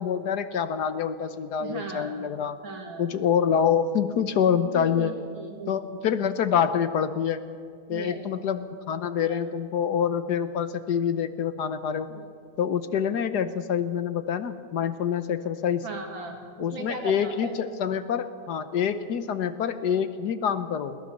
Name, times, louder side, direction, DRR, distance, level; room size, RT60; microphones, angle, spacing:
voice 1, 0.0-2.6 3.0-5.1 5.7-7.5 7.9-12.1 12.6-15.8 16.6-21.0, left 8 dB, 60° left, 11 dB, 1.3 m, -26 dB
voice 2, 1.6-2.3 2.6-3.2 4.7-6.0 7.9-8.2 9.3-9.4 12.1-12.3 15.8-16.4 16.7-17.5, right 4 dB, 65° right, 2 dB, 3.4 m, -37 dB
21.5 x 18.5 x 6.5 m, 2.1 s
omnidirectional pair, 2.2 m